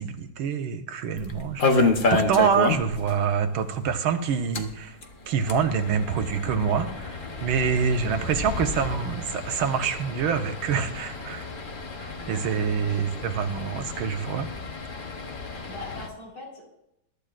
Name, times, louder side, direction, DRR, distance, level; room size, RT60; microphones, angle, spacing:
voice 1, 0.0-5.0 5.3-11.5 12.0-14.5, right 6 dB, 80° right, 6 dB, 1.8 m, -26 dB
sound 1, 1.2-3.1 3.4-3.5 3.8-3.9 4.4-16.1, left 3 dB, 45° left, 0.6 m, -30 dB
voice 2, 7.3-7.7 12.2-13.0 15.7-16.7, left 2 dB, 75° left, -3 dB, 4.8 m, -42 dB
21.5 x 11.0 x 2.5 m, 0.81 s
omnidirectional pair, 2.3 m